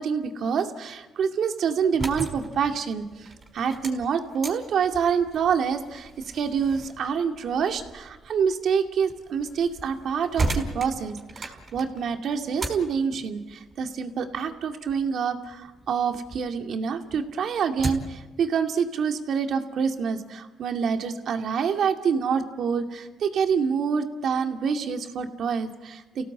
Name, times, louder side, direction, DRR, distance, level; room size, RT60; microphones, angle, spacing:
voice 1, 0.0-26.3, right 6 dB, 65° right, 5 dB, 2.3 m, -27 dB
sound 1, 1.8-16.5 16.9-18.3, right 2 dB, 35° right, 5.1 m, -37 dB
30.0 x 17.5 x 8.6 m, 1.2 s
cardioid pair, 90°, 0 cm